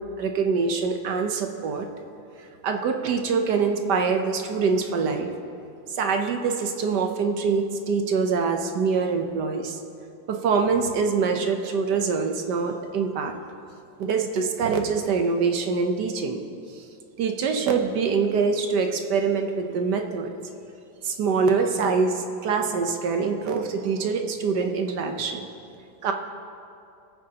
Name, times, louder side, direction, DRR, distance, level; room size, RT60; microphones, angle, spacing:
voice 1, 0.2-1.9 2.6-5.3 5.9-9.8 10.3-13.3 14.0-16.4 17.2-20.3 21.0-25.5 26.0-26.1, right 5 dB, 65° right, 4 dB, 1.3 m, -24 dB
23.5 x 8.7 x 2.9 m, 2.6 s
omnidirectional pair, 2.1 m